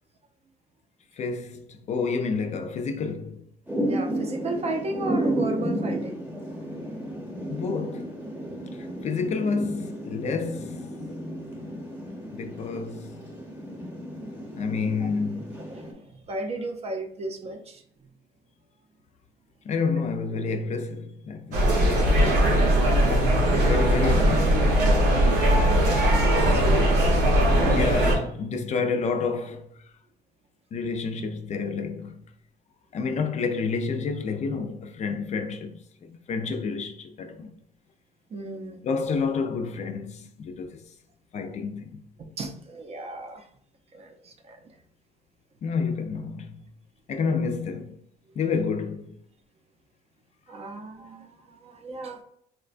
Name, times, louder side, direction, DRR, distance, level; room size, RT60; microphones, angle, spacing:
voice 1, 1.2-3.4 7.5-8.1 8.7-10.9 12.3-13.2 14.5-15.6 19.6-21.7 23.4-24.7 26.4-27.2 27.6-29.7 30.7-32.2 32.9-35.8 36.1-37.5 38.8-40.9 41.3-42.0 45.6-46.6 47.1-48.0 48.4-49.2, left 4 dB, 45° left, 0.4 m, -29 dB
Thunder / Rain, 3.7-15.9, right 1 dB, 10° right, 0.8 m, -33 dB
voice 2, 3.7-6.2 15.0-15.1 15.6-18.1 25.9-26.9 38.3-38.8 42.2-43.5 43.9-44.7 50.5-52.2, right 2 dB, 35° right, 0.5 m, -35 dB
sound 1, 21.5-28.2, equal, 85° right, 0.9 m, -20 dB
4.1 x 2.2 x 2.4 m
cardioid pair, 110°, 17 cm